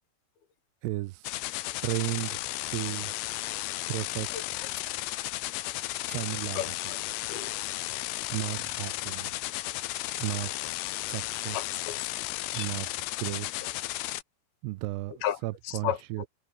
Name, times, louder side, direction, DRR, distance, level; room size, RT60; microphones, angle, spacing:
voice 1, 0.8-1.3 1.8-2.4 2.7-3.1 3.8-4.3 6.1-6.6 8.3-9.3 10.2-10.5 11.1-11.6 12.5-12.9 13.2-13.5 14.6-16.2, right 20 dB, 80° right, 2.6 m, -33 dB
sound 1, 1.2-14.2, left 17 dB, 80° left, 2.2 m, -34 dB
voice 2, 4.3-4.7 6.5-7.0 7.3-7.5 11.5-12.0 12.5-12.7 15.1-16.3, left 11 dB, 65° left, 3.7 m, -34 dB
omnidirectional pair, 5.1 m